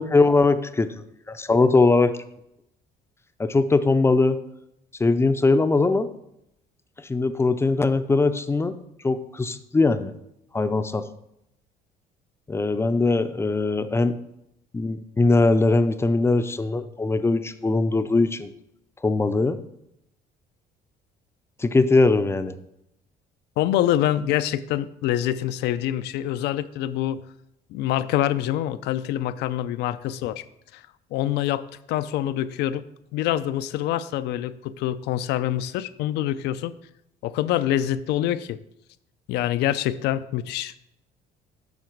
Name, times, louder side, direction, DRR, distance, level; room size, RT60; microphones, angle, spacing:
voice 1, 0.0-2.2 3.4-4.4 5.0-6.1 7.1-8.8 9.0-10.1 10.5-11.1 12.5-14.1 14.7-18.5 19.0-19.6 21.6-22.5, left 3 dB, 15° left, 11 dB, 0.4 m, -21 dB
voice 2, 23.6-27.2 27.7-30.4 30.7-30.8 31.1-32.8 33.1-36.7 37.2-38.6 39.3-40.7, left 12 dB, 80° left, 14 dB, 0.4 m, -25 dB
7.3 x 5.9 x 4.5 m, 0.81 s
cardioid pair, 110°, 17 cm